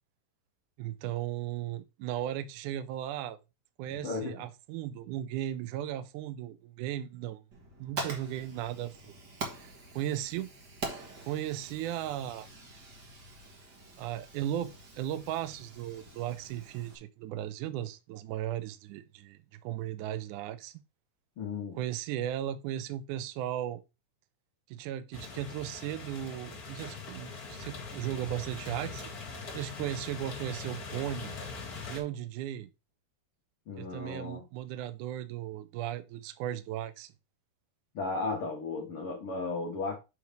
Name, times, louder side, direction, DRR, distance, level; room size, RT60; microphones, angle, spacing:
voice 1, 0.8-3.4 3.8-7.4 7.8-9.2 9.6-10.5 10.9-12.5 14.0-20.8 21.7-23.8 24.7-29.1 29.5-31.4 31.9-32.7 33.8-37.1, right 12 dB, 85° right, 1.8 m, -36 dB
voice 2, 4.0-4.4 21.4-21.8 33.7-34.5 37.9-40.0, left 3 dB, 65° left, 1.3 m, -35 dB
Fire, 7.5-17.0, right 3 dB, 55° right, 1.1 m, -44 dB
sound 1, 25.1-32.0, left 4 dB, 40° left, 1.5 m, -42 dB
7.7 x 3.2 x 5.1 m
omnidirectional pair, 4.3 m